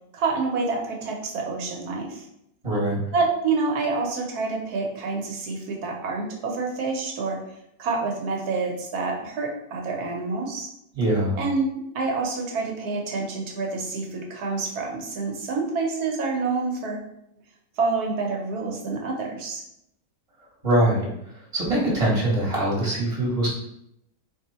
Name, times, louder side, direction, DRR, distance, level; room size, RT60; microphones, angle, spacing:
voice 1, 0.1-2.3 3.1-7.4 7.8-10.7 11.4-11.7 11.9-17.0 17.8-19.6, right 4 dB, 75° right, 1 dB, 1.5 m, -27 dB
voice 2, 2.6-3.0 10.9-11.3 20.6-23.5, right 1 dB, 20° right, -4 dB, 1.7 m, -23 dB
4.3 x 2.8 x 4.3 m, 0.76 s
omnidirectional pair, 1.7 m